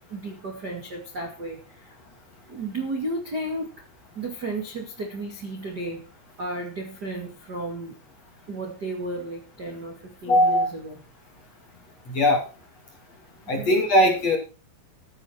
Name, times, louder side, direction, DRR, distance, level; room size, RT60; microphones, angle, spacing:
voice 1, 0.1-1.9 2.5-3.8 4.1-6.1 6.4-8.0 8.5-11.0 13.5-13.7, right 2 dB, 50° right, 2 dB, 1.2 m, -33 dB
voice 2, 10.3-10.7 12.1-12.4 13.5-14.4, left 1 dB, 40° left, 3 dB, 2.8 m, -19 dB
15.0 x 9.9 x 4.5 m, 0.32 s
omnidirectional pair, 5.9 m